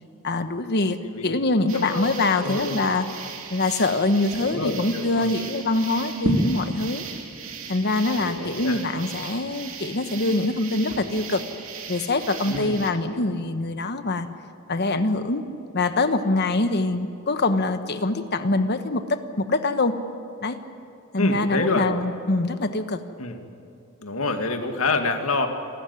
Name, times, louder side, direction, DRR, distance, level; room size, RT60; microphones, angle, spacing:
voice 1, 0.2-1.0 1.2-3.1 3.5-7.0 7.7-11.4 11.9-14.3 14.7-15.4 15.7-19.9 20.4-20.6 21.1-23.0, left 2 dB, 50° left, 9 dB, 1.2 m, -24 dB
voice 2, 1.0-1.3 1.7-2.8 4.4-5.3 8.2-8.8 12.5-12.7 21.2-21.9 23.2-23.4 24.0-25.5, left 2 dB, 80° left, 5 dB, 2.1 m, -27 dB
sound 1, 1.7-12.9, right 2 dB, 70° right, 2.7 m, -34 dB
28.0 x 13.5 x 9.6 m, 2.6 s
head